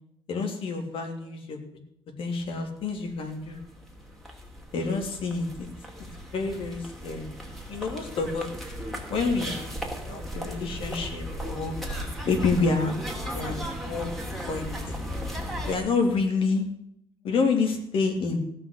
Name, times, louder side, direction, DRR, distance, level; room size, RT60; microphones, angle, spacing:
voice 1, 0.3-1.6 2.2-3.6 4.7-5.7 6.3-7.3 7.7-8.5 9.1-9.7 10.1-11.7 12.2-12.9 13.3-13.6 13.8-14.1 14.5-15.0 15.6-16.7 17.2-18.4, left 4 dB, 70° left, 3 dB, 3.0 m, -28 dB
sound 1, 3.0-3.1 3.2-15.8, equal, ahead, 2.9 m, -36 dB
17.0 x 6.1 x 8.2 m, 0.73 s
cardioid pair, 110°, 10 cm